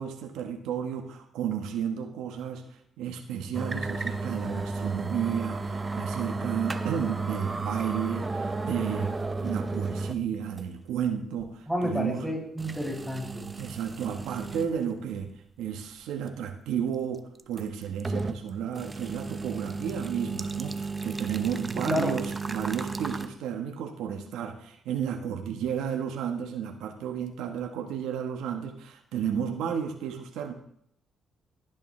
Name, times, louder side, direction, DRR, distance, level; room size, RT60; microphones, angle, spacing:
voice 1, 0.0-12.3 13.6-30.5, right 8 dB, 90° right, 5 dB, 1.2 m, -32 dB
sound 1, 3.5-10.2 10.6-10.7 11.4-11.5 12.6-14.7 15.2-15.3 17.4-18.4 18.7-23.3, right 3 dB, 25° right, 0.8 m, -33 dB
voice 2, 11.7-13.5 21.7-22.1, left 1 dB, 5° left, -4 dB, 5.9 m, -30 dB
15.5 x 10.0 x 3.2 m, 0.71 s
cardioid pair, 90°, 0 cm